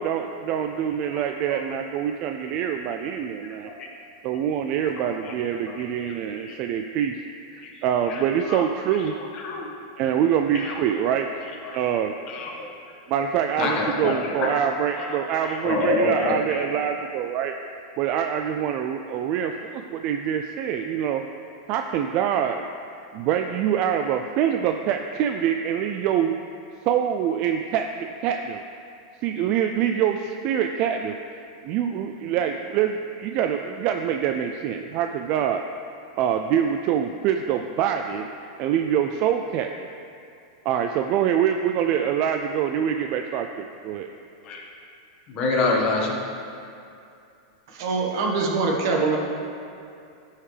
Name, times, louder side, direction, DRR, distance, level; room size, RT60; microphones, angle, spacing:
voice 1, 0.0-3.7 4.2-7.2 7.5-9.1 10.0-11.3 11.7-12.1 13.1-17.6 18.0-21.2 21.7-22.7 23.1-26.3 26.8-28.6 29.2-35.6 36.2-38.3 38.6-39.7 40.7-44.1, right 9 dB, 45° right, 5 dB, 0.4 m, -25 dB
voice 2, 5.0-5.3 5.7-6.2 6.4-6.5 7.6-7.7 8.1-8.2 8.5-8.6 9.4-9.7 10.5-10.7 11.6-11.8 12.3-12.7 13.6-14.5 15.0-16.9 44.4-44.6 45.3-46.2, left 3 dB, 40° left, -1 dB, 1.5 m, -27 dB
voice 3, 47.7-49.2, right 4 dB, 65° right, 0 dB, 1.4 m, -23 dB
12.5 x 5.6 x 3.3 m, 2.5 s
supercardioid pair, 135°, 2 cm